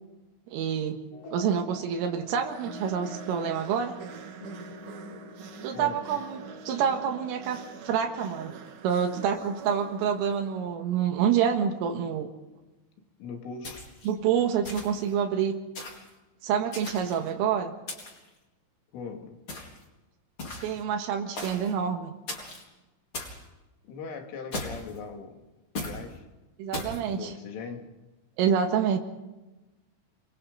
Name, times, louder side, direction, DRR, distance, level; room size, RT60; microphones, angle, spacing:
voice 1, 0.5-1.0 1.3-4.0 5.6-8.5 8.8-12.3 14.1-15.6 16.4-17.7 20.6-22.1 26.6-27.3 28.4-29.0, right 8 dB, 85° right, 4 dB, 4.2 m, -27 dB
sound 1, 1.1-8.3, left 2 dB, 50° left, 3.4 m, -46 dB
sound 2, 2.3-10.8, right 7 dB, 60° right, 2.2 m, -45 dB
voice 2, 5.7-6.0 13.2-13.8 18.9-19.4 23.8-25.4 25.8-26.3 27.1-27.9, left 5 dB, 75° left, 3 dB, 5.1 m, -40 dB
sound 3, 13.6-14.1 14.6-15.1 15.8-16.1 16.7-17.3 17.9-18.3 19.5-19.8 20.4-20.8 21.4-21.7 22.3-22.6 23.1-23.4 24.5-25.0 25.8-26.0 26.7-27.0, left 2 dB, 25° left, 4.6 m, -37 dB
30.0 x 23.0 x 4.0 m, 1.1 s
omnidirectional pair, 5.7 m